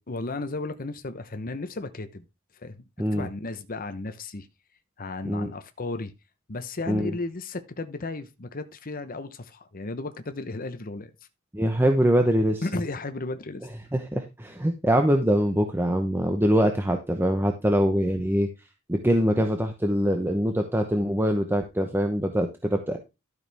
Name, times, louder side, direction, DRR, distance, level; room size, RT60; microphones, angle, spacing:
voice 1, 0.1-2.3 2.5-4.5 5.0-6.1 6.5-11.1 12.6-13.7 18.1-18.2, left 2 dB, 45° left, 0.9 m, -34 dB
voice 2, 3.0-3.3 5.2-5.5 6.9-7.1 11.5-12.6 13.9-18.5 18.9-23.0, equal, 10° right, 0.9 m, -23 dB
12.0 x 6.5 x 3.4 m
head